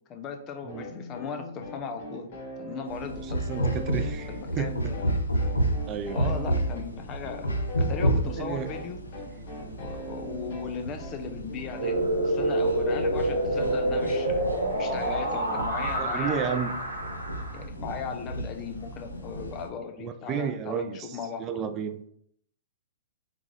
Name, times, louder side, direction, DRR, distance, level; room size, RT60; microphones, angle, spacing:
voice 1, 0.1-2.3 2.6-3.8 4.3-5.2 6.1-9.0 9.8-12.0 12.2-14.4 14.8-16.8 17.5-21.6, left 6 dB, 30° left, 6 dB, 0.6 m, -38 dB
sound 1, 0.7-15.6, left 1 dB, 50° left, 1.6 m, -41 dB
sound 2, 2.9-19.7, right 1 dB, 90° left, 0.7 m, -32 dB
voice 2, 3.2-4.3 4.6-4.7 5.9-6.3 8.4-8.7 16.0-16.7 20.0-22.0, right 7 dB, 30° right, 9 dB, 0.3 m, -32 dB
sound 3, 11.8-17.6, right 1 dB, 85° right, 1.0 m, -27 dB
3.8 x 3.5 x 3.2 m, 0.69 s
hypercardioid pair, 115°, 0 cm